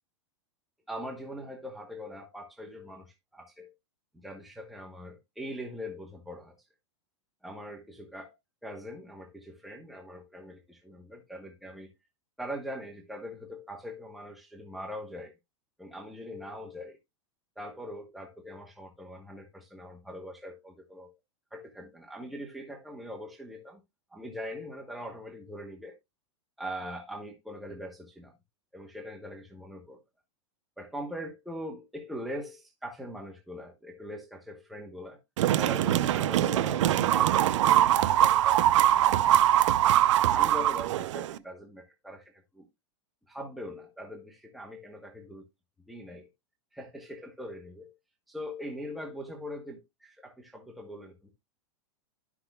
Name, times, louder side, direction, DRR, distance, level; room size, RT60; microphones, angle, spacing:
voice 1, 0.9-3.7 4.2-6.5 7.4-8.3 8.6-11.9 12.4-15.3 15.8-17.0 17.6-21.1 21.5-23.8 24.1-25.9 26.6-28.3 28.7-30.0 30.8-35.2 35.6-42.6 43.3-45.4 45.9-46.3 46.7-47.9 48.3-51.3, equal, ahead, 1.0 m, -42 dB
sound 1, 35.4-41.4, right 12 dB, 75° right, 0.5 m, -23 dB
11.5 x 6.1 x 2.3 m
supercardioid pair, 130°, 16 cm